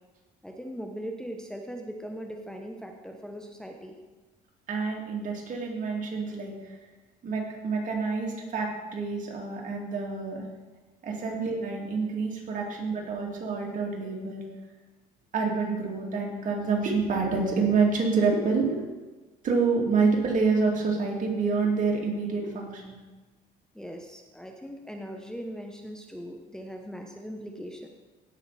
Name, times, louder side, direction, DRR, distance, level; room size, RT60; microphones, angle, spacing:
voice 1, 0.4-4.0 11.3-11.4 12.5-12.8 23.7-27.9, equal, 5° left, 2 dB, 0.9 m, -40 dB
voice 2, 4.7-6.7 7.2-10.5 11.0-14.4 15.3-19.0 19.4-23.0, right 4 dB, 50° right, 0 dB, 2.6 m, -27 dB
16.5 x 5.9 x 4.2 m, 1.2 s
cardioid pair, 110°, 17 cm